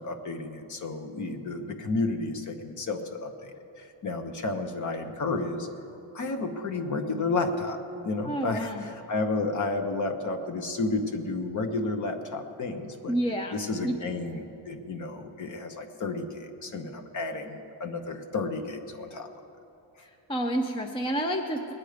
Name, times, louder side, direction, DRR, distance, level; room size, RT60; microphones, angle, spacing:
voice 1, 0.0-5.7 6.1-7.8 8.0-13.2 13.5-19.3, left 3 dB, 35° left, 7 dB, 1.0 m, -32 dB
voice 2, 8.2-8.8 13.1-14.0 20.0-21.7, right 1 dB, 10° left, 5 dB, 0.4 m, -30 dB
20.5 x 9.3 x 5.0 m, 2.9 s
cardioid pair, 175°, 49 cm